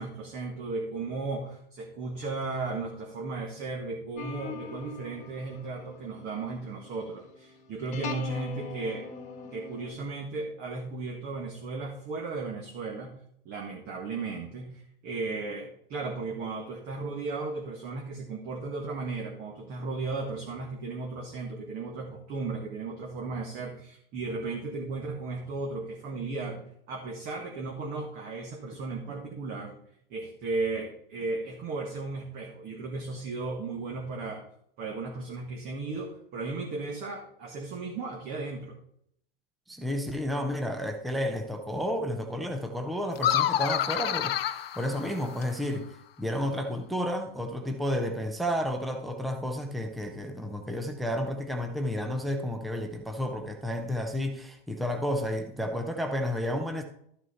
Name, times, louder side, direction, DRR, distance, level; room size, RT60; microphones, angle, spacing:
voice 1, 0.0-9.1 9.5-13.1 13.4-29.8 30.1-34.4 34.8-38.8, right 3 dB, 30° right, 1.6 m, -35 dB
sound 1, 4.2-9.9, left 3 dB, 25° left, 1.6 m, -41 dB
voice 2, 39.7-45.9 46.2-56.8, equal, ahead, 0.7 m, -31 dB
sound 2, 43.2-45.7, left 11 dB, 85° left, 0.7 m, -28 dB
12.5 x 6.1 x 4.2 m
hypercardioid pair, 135°, 29 cm